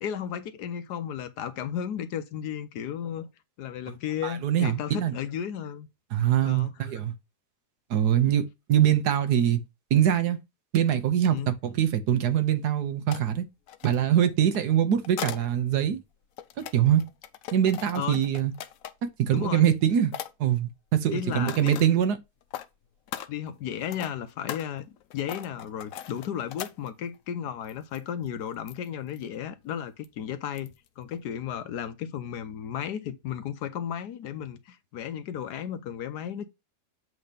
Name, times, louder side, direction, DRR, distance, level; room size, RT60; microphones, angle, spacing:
voice 1, 0.0-3.3 3.6-5.9 6.4-6.9 11.3-11.5 18.0-18.3 19.3-19.7 21.1-21.9 23.3-36.5, left 9 dB, 85° left, 1.4 m, -34 dB
voice 2, 4.2-5.1 6.1-7.1 7.9-9.6 9.9-10.4 10.7-13.4 13.8-16.0 16.7-17.0 17.5-18.5 19.2-20.1 20.4-22.2, right 10 dB, 80° right, 1.5 m, -23 dB
sound 1, 13.1-13.2 13.7-15.5 16.1-19.1 19.6-19.8 20.1-20.3 21.2-21.9 22.4-22.7 23.1-27.2 27.7-28.0 28.3-28.4 28.7-28.9 29.1-29.2 30.0-30.1 30.6-30.9 31.1-31.2, left 11 dB, 65° left, 1.0 m, -39 dB
7.7 x 3.0 x 5.2 m
omnidirectional pair, 1.7 m